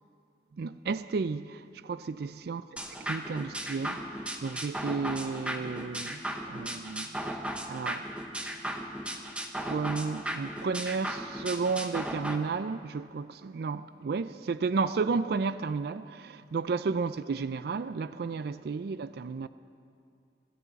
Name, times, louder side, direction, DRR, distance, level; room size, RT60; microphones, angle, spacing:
voice 1, 0.5-2.6 3.0-8.1 9.6-19.5, right 4 dB, 60° right, 0.4 m, -33 dB
sound 1, 2.8-12.4, right 1 dB, 5° right, 0.9 m, -36 dB
25.5 x 13.5 x 4.1 m
head